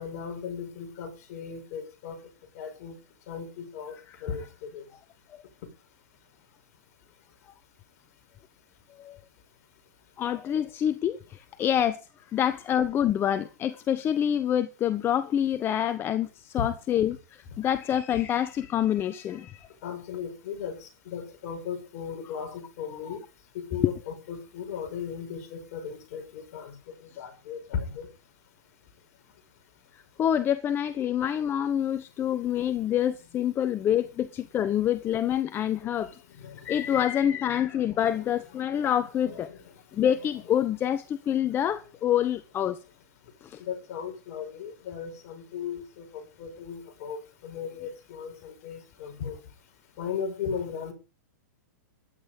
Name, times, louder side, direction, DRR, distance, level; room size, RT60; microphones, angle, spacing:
voice 1, 0.0-2.2 2.5-3.0 3.3-4.0 4.2-4.8 16.6-16.7 19.8-23.2 23.5-28.1 35.8-36.0 36.3-37.0 37.9-38.0 39.2-39.6 43.6-49.4 50.0-50.9, left 7 dB, 50° left, 6.4 m, -37 dB
voice 2, 10.2-12.0 12.3-19.7 23.8-23.9 30.2-36.2 36.6-39.5 39.9-42.8 43.4-43.6, left 10 dB, 25° left, 1.1 m, -27 dB
15.0 x 11.0 x 5.4 m
hypercardioid pair, 135°, 10 cm